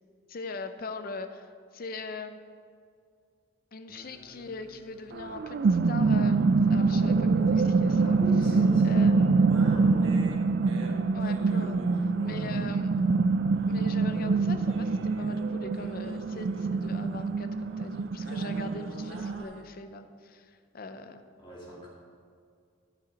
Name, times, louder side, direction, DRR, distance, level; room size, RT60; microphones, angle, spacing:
voice 1, 0.3-2.4 3.7-8.2 8.8-9.5 11.1-13.0 13.7-21.2, left 3 dB, 45° left, 8 dB, 0.5 m, -41 dB
sound 1, 3.9-19.6, right 1 dB, 70° right, 1.2 m, -47 dB
sound 2, 5.2-19.4, right 4 dB, 50° right, 0.3 m, -25 dB
voice 2, 8.0-10.1 12.2-12.6 21.4-21.9, equal, 25° left, -5 dB, 2.2 m, -42 dB
13.0 x 5.6 x 5.1 m, 2.2 s
head